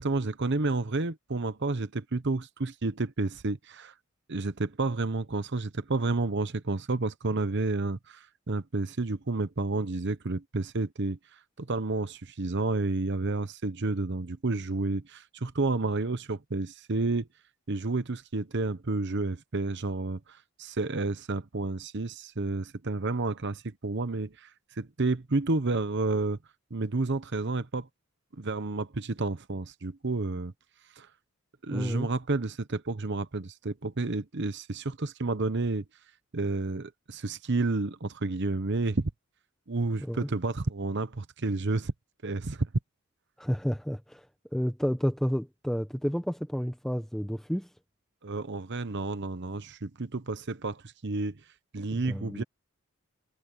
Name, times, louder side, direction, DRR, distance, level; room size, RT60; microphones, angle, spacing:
voice 1, 0.0-3.9 4.3-11.2 11.6-17.3 17.7-20.2 20.6-24.5 24.8-26.4 26.7-27.9 28.4-30.5 31.0-31.1 31.6-35.8 36.3-39.1 39.7-41.9 42.2-42.7 48.2-51.4 51.7-52.4, right 3 dB, 55° right, 0.9 m, -30 dB
voice 2, 31.7-32.1 40.0-40.3 43.4-47.7 51.9-52.4, equal, ahead, 1.3 m, -31 dB
head